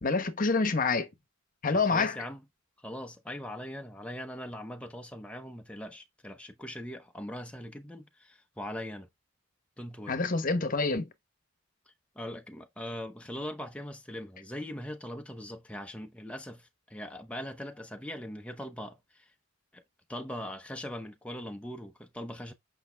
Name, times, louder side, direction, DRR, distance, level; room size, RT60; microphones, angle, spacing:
voice 1, 0.0-1.1 1.6-2.2 10.1-11.1, left 4 dB, 45° left, 1.1 m, -27 dB
voice 2, 1.7-2.4 2.8-9.1 9.8-10.2 12.2-19.3 19.7-19.8 20.1-22.5, equal, 5° left, 0.8 m, -41 dB
8.4 x 5.5 x 3.4 m
head